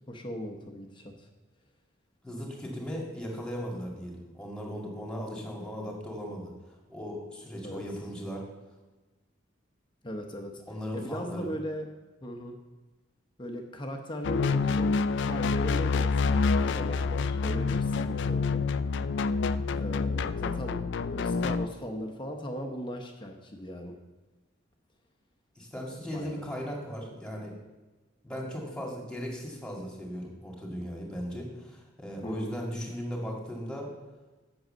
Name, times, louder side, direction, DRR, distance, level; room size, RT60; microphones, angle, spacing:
voice 1, 0.1-1.1 7.6-7.8 10.0-10.6 10.9-11.9 12.2-12.6 13.4-18.6 19.8-20.8 21.1-23.9 26.1-26.4 32.2-32.5, equal, 25° left, 3 dB, 0.9 m, -38 dB
voice 2, 2.2-6.5 6.9-8.4 10.7-11.5 25.6-27.5 28.2-33.9, equal, 5° left, -2 dB, 2.3 m, -37 dB
sound 1, 14.2-21.7, left 4 dB, 60° left, 0.4 m, -27 dB
7.8 x 6.4 x 7.7 m, 1.2 s
head